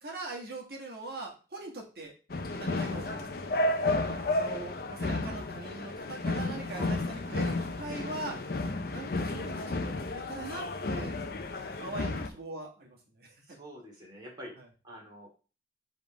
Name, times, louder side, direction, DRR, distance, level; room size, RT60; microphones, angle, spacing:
voice 1, 0.0-2.1 2.6-3.6 4.4-8.4 8.9-11.1 11.8-13.6 14.6-14.7, right 2 dB, 60° right, 0 dB, 1.8 m, -42 dB
sound 1, 2.3-12.3, left 2 dB, 55° left, 0.6 m, -32 dB
voice 2, 3.8-4.4 6.7-7.6 12.0-12.1 13.5-14.5 14.8-15.3, right 1 dB, 25° right, -3 dB, 2.5 m, -47 dB
5.2 x 3.8 x 4.9 m, 0.35 s
head